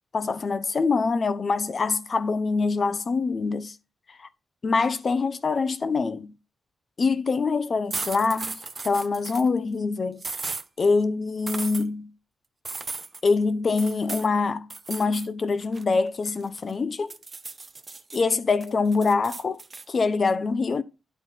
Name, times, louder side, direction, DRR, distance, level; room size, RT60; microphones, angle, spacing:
voice 1, 0.1-3.8 4.1-4.3 4.6-6.3 7.0-10.2 10.8-12.1 13.2-17.1 18.1-20.8, left 4 dB, 45° left, 0.7 m, -25 dB
sound 1, 7.9-9.5 10.2-10.7 11.5-11.8 12.7-13.2 13.8-14.3 14.7-15.3 15.6-16.7 17.1-18.2 18.6-19.9, right 3 dB, 35° right, 0.6 m, -35 dB
9.9 x 4.3 x 4.4 m
cardioid pair, 90°, 0 cm